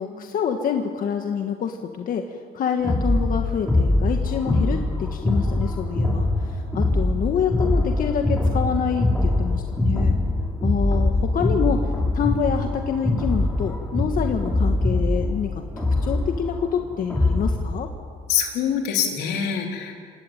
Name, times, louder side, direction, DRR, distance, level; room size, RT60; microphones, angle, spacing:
voice 1, 0.0-10.1 10.6-11.9 12.1-17.9, left 7 dB, 55° left, 4 dB, 1.7 m, -27 dB
sound 1, 2.8-17.6, left 2 dB, 10° left, 6.1 m, -23 dB
voice 2, 18.3-20.0, left 8 dB, 80° left, 2 dB, 3.9 m, -24 dB
28.0 x 17.0 x 9.1 m, 2.1 s
cardioid pair, 110°, 17 cm